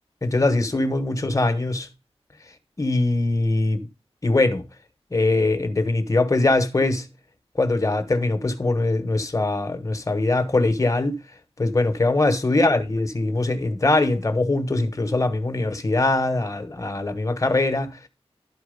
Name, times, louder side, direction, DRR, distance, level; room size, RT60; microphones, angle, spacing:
voice 1, 0.2-1.9 2.8-3.9 4.2-4.6 5.1-7.1 7.6-11.2 11.6-18.0, left 2 dB, 30° left, 1.2 m, -22 dB
12.0 x 4.7 x 5.1 m
wide cardioid pair, 90°, 11 cm